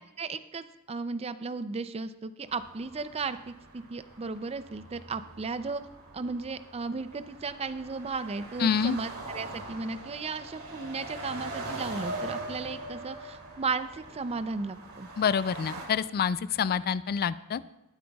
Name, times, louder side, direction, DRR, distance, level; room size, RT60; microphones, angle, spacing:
voice 1, 0.2-5.8 6.1-15.1, right 4 dB, 30° right, 12 dB, 0.4 m, -35 dB
sound 1, 2.5-15.9, right 2 dB, 70° right, 2.8 m, -42 dB
voice 2, 8.6-9.0 15.2-17.6, left 7 dB, 45° left, 16 dB, 0.3 m, -27 dB
20.0 x 9.3 x 2.3 m, 1.0 s
head